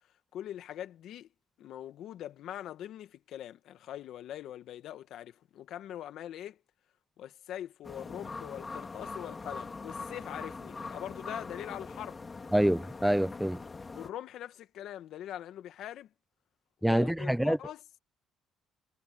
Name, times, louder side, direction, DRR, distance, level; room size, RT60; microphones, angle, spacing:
voice 1, 0.3-1.3 1.6-6.6 7.2-12.2 13.9-16.1 16.8-17.8, left 11 dB, 70° left, 1.7 m, -42 dB
sound 1, 7.8-14.1, left 4 dB, 25° left, 3.0 m, -42 dB
voice 2, 12.5-13.6 16.8-17.6, equal, 5° right, 0.5 m, -26 dB
cardioid pair, 105°, 0 cm